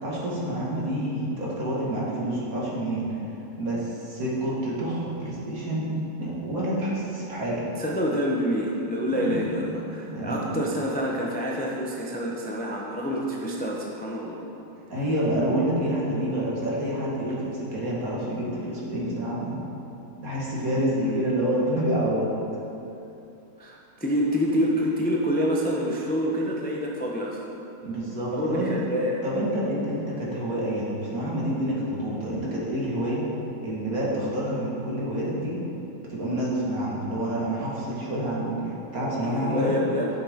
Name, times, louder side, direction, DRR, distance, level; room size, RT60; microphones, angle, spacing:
voice 1, 0.0-3.1 3.6-5.9 6.2-7.6 9.1-9.8 10.1-10.6 14.7-19.6 20.2-22.4 27.8-28.7 29.2-33.3 33.6-35.6 36.1-39.7, right 1 dB, 60° right, -6 dB, 2.2 m, -28 dB
voice 2, 7.8-14.4 20.9-21.2 23.6-27.4 28.3-29.2 39.2-40.1, equal, 10° left, -3 dB, 0.5 m, -27 dB
12.0 x 6.8 x 3.7 m, 2.9 s
omnidirectional pair, 1.7 m